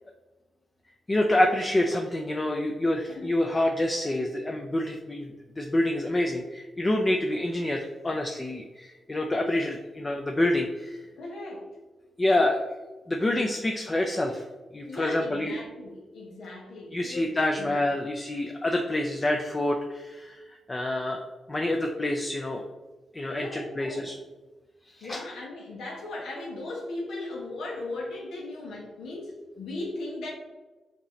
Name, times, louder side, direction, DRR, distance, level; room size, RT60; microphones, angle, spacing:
voice 1, 1.1-5.3 5.6-11.0 12.2-12.6 13.1-14.4 14.7-15.6 16.9-21.2 21.5-22.6 23.1-24.2 25.0-25.2, left 1 dB, 25° left, 2 dB, 0.5 m, -27 dB
voice 2, 11.2-11.7 14.9-17.3 17.6-17.7 23.4-24.1 25.0-30.3, left 2 dB, 85° left, -2 dB, 1.1 m, -37 dB
5.1 x 2.8 x 3.2 m, 1.2 s
cardioid pair, 70°, 0 cm